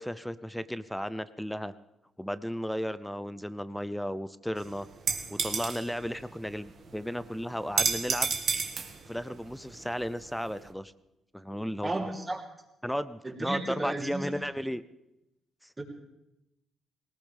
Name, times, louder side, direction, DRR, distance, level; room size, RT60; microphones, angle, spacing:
voice 1, 0.0-1.7 2.2-4.9 5.3-8.3 9.1-10.9 11.3-11.9 12.8-14.8 15.6-15.7, equal, ahead, 14 dB, 0.5 m, -34 dB
sound 1, 4.6-10.7, right 5 dB, 55° right, 1.8 m, -33 dB
voice 2, 11.8-12.4 13.2-14.3 15.8-15.9, right 2 dB, 20° right, -1 dB, 3.1 m, -33 dB
19.0 x 18.5 x 3.5 m, 0.90 s
cardioid pair, 90°, 0 cm